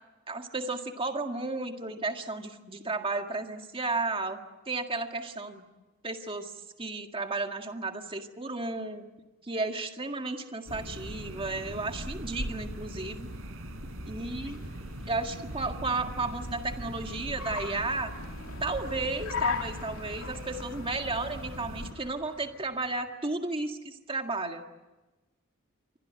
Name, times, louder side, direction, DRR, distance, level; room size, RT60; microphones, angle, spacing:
voice 1, 0.3-4.4 4.6-5.7 6.0-6.5 6.8-9.0 9.4-13.3 14.1-14.6 15.1-18.1 18.6-24.6, right 3 dB, 25° right, 5 dB, 1.9 m, -33 dB
sound 1, 10.7-21.9, right 1 dB, 70° right, 4.2 m, -41 dB
sound 2, 12.6-12.8 13.4-13.6 14.1-15.8 16.4-16.6 17.1-18.8 19.4-19.6 20.1-21.6, equal, 45° left, 6.0 m, -52 dB
Car, 13.5-23.0, left 5 dB, 85° left, 2.3 m, -40 dB
28.0 x 24.5 x 7.7 m, 1.1 s
head